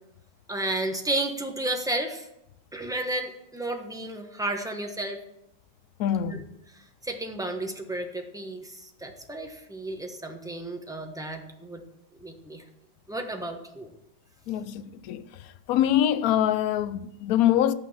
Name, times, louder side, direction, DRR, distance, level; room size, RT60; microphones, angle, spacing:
voice 1, 0.5-2.3 2.7-5.2 6.3-6.4 6.7-11.8 12.2-12.6 13.1-13.9, right 1 dB, 5° right, 0.7 m, -32 dB
voice 2, 6.0-6.5 14.5-15.2 15.7-17.7, left 11 dB, 75° left, 0.8 m, -24 dB
11.5 x 8.9 x 5.7 m
omnidirectional pair, 2.1 m